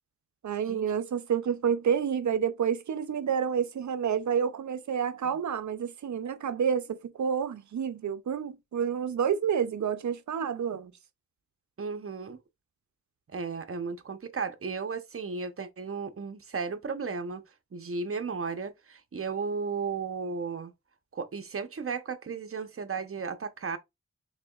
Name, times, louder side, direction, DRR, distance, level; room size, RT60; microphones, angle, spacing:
voice 1, 0.4-10.9, right 7 dB, 75° right, 0.6 m, -29 dB
voice 2, 11.8-12.4 13.3-17.4 17.7-20.7 21.1-23.8, right 5 dB, 50° right, 0.8 m, -34 dB
4.3 x 3.7 x 2.3 m
cardioid pair, 50°, 29 cm